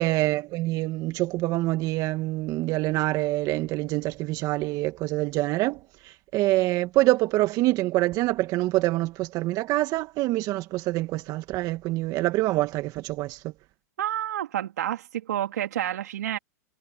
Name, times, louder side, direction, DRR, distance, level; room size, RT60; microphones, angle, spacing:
voice 1, 0.0-13.5, right 18 dB, 40° right, 1.7 m, -26 dB
voice 2, 14.0-16.4, right 12 dB, 75° right, 3.5 m, -29 dB
hypercardioid pair, 115°, 9 cm